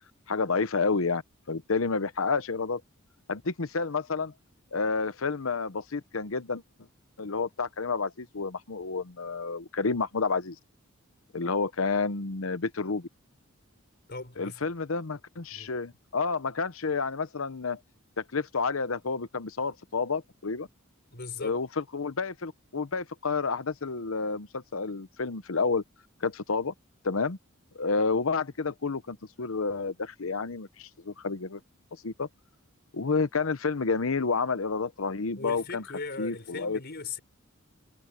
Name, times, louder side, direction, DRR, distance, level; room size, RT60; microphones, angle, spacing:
voice 1, 0.3-1.2 1.5-2.8 3.3-4.3 4.7-6.6 7.2-10.6 11.3-13.1 14.4-17.8 18.2-20.7 21.4-25.8 26.2-26.7 27.0-27.4 27.7-31.6 32.0-32.3 32.9-35.8 36.2-36.8, left 4 dB, 80° left, 0.9 m, -30 dB
voice 2, 14.1-14.6 15.5-15.8 21.1-21.6 35.3-37.2, left 4 dB, 50° left, 5.3 m, -39 dB
head